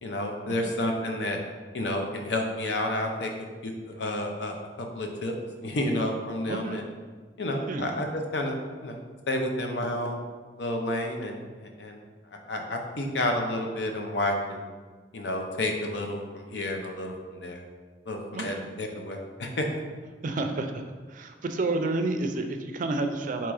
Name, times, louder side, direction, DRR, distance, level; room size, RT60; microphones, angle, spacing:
voice 1, 0.0-1.4 1.7-3.3 3.6-4.6 4.9-6.8 7.4-9.0 9.3-10.2 10.6-12.0 12.3-14.7 15.1-17.6 18.1-19.7, left 1 dB, 70° left, 3 dB, 0.6 m, -30 dB
voice 2, 6.5-6.8 7.7-7.9 18.3-18.6 20.2-20.8 21.1-23.5, right 2 dB, 50° right, 6 dB, 0.4 m, -30 dB
3.6 x 3.0 x 4.7 m, 1.4 s
head